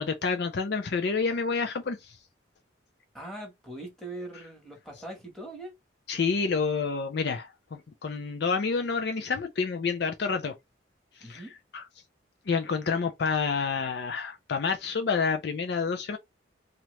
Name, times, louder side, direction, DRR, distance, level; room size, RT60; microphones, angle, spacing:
voice 1, 0.0-2.0 6.1-10.5 11.3-11.4 11.7-11.8 12.5-16.2, left 5 dB, 55° left, 0.4 m, -28 dB
voice 2, 3.1-5.7 11.2-11.5, right 1 dB, ahead, 1.2 m, -41 dB
2.8 x 2.4 x 3.1 m
head